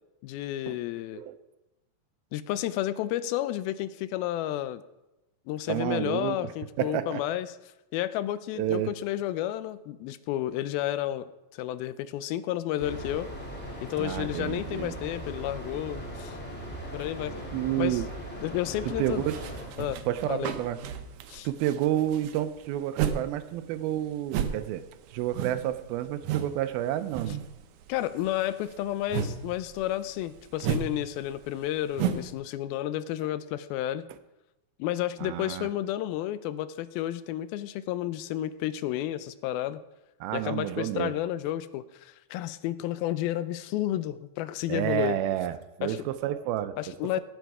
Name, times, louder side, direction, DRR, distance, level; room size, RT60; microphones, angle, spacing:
voice 1, 0.2-1.2 2.3-4.8 5.5-7.5 7.9-13.3 13.8-16.4 16.9-17.4 17.8-18.0 18.4-19.2 19.8-20.0 20.3-20.5 21.3-21.5 27.9-34.0 34.8-39.8 40.3-45.2 45.8-46.0 46.8-47.2, left 13 dB, 90° left, 14 dB, 2.5 m, -31 dB
voice 2, 5.7-6.5 6.8-7.2 8.5-8.9 14.0-14.9 17.5-18.1 18.9-19.3 20.1-20.8 21.4-24.8 25.1-27.4 35.2-35.7 40.2-41.1 44.7-46.8, right 12 dB, 90° right, 12 dB, 2.6 m, -30 dB
sound 1, 12.8-19.7, right 1 dB, 5° left, 1.8 m, -39 dB
sound 2, 19.0-23.3 23.5-26.6 26.8-27.5 27.8-32.3, right 9 dB, 70° right, 2.0 m, -33 dB
17.0 x 8.1 x 4.8 m, 0.99 s
omnidirectional pair, 4.2 m